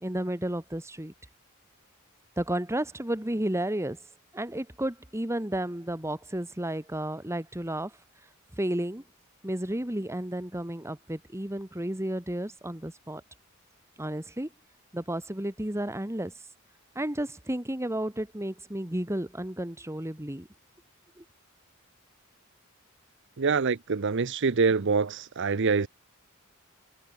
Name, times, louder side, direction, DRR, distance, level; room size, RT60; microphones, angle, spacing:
voice 1, 0.0-1.1 2.4-4.0 4.3-7.9 8.6-9.0 9.4-13.2 14.0-14.5 14.9-16.3 17.0-20.5 21.2-21.3, right 1 dB, 15° right, 2.0 m, -32 dB
voice 2, 23.4-25.9, right 4 dB, 60° right, 0.7 m, -25 dB
head